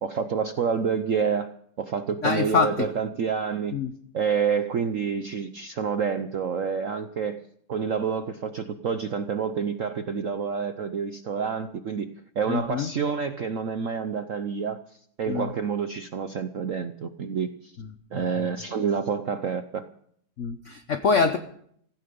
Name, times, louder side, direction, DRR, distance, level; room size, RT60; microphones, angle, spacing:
voice 1, 0.0-3.8 4.1-7.4 7.7-12.1 12.4-14.8 15.2-17.7 18.1-19.8, right 6 dB, 65° right, 9 dB, 0.7 m, -28 dB
voice 2, 2.2-2.9 3.7-3.9 12.5-12.9 15.3-15.5 17.8-17.9 18.1-18.5 20.4-21.4, left 5 dB, 60° left, 9 dB, 0.8 m, -25 dB
16.0 x 15.0 x 5.3 m, 0.67 s
omnidirectional pair, 2.3 m